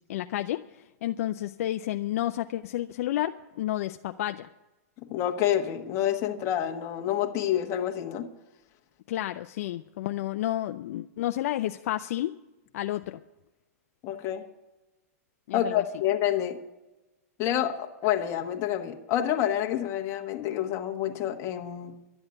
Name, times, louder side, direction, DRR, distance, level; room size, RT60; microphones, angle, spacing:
voice 1, 0.1-0.6 1.0-4.5 9.1-12.3 12.7-13.2 15.5-15.8, left 14 dB, 60° left, 8 dB, 0.5 m, -31 dB
voice 2, 5.1-8.3 14.0-14.4 15.5-16.6 17.4-21.9, left 11 dB, 35° left, 4 dB, 1.3 m, -28 dB
12.0 x 7.9 x 9.7 m, 1.0 s
hypercardioid pair, 140°, 9 cm